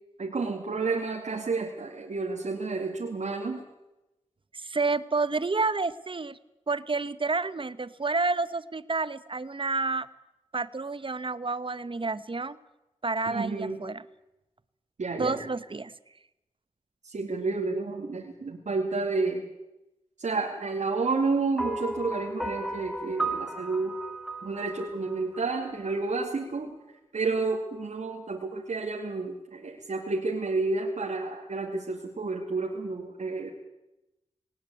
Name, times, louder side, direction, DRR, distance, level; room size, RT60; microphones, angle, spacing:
voice 1, 0.2-3.6 13.3-13.8 15.0-15.4 17.0-19.5 20.2-24.0 24.4-26.7 27.1-33.5, right 3 dB, 75° right, 0 dB, 2.5 m, -30 dB
voice 2, 4.5-6.4 6.7-10.1 10.5-12.6 13.0-14.0 15.2-15.9, right 3 dB, 45° right, 15 dB, 1.1 m, -29 dB
sound 1, 21.6-25.9, right 2 dB, 5° right, 2.7 m, -35 dB
19.0 x 18.5 x 8.5 m, 0.95 s
cardioid pair, 40°, 12 cm